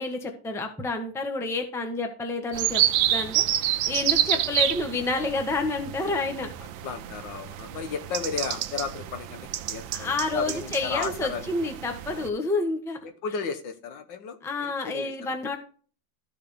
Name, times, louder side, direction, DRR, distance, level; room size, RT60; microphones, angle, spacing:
voice 1, 0.0-2.8 3.1-6.5 9.9-13.0 14.4-15.6, left 3 dB, ahead, 4 dB, 0.9 m, -29 dB
sound 1, 2.5-12.3, right 12 dB, 85° right, 1.3 m, -29 dB
voice 2, 6.8-11.5 13.0-15.4, left 6 dB, 75° left, 7 dB, 1.7 m, -34 dB
13.5 x 4.9 x 3.4 m, 0.41 s
omnidirectional pair, 2.1 m